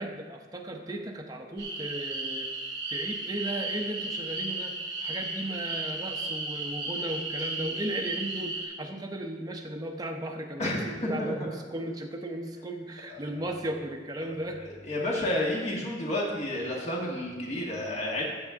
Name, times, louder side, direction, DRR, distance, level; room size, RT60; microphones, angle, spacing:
voice 1, 0.0-14.6, right 1 dB, 20° right, 1 dB, 0.7 m, -36 dB
sound 1, 1.6-8.6, right 2 dB, 70° right, 3.7 m, -34 dB
voice 2, 10.6-11.6 13.1-13.2 14.2-14.3 14.8-18.2, left 1 dB, 35° left, -3 dB, 1.6 m, -30 dB
14.5 x 7.6 x 3.7 m, 1.4 s
head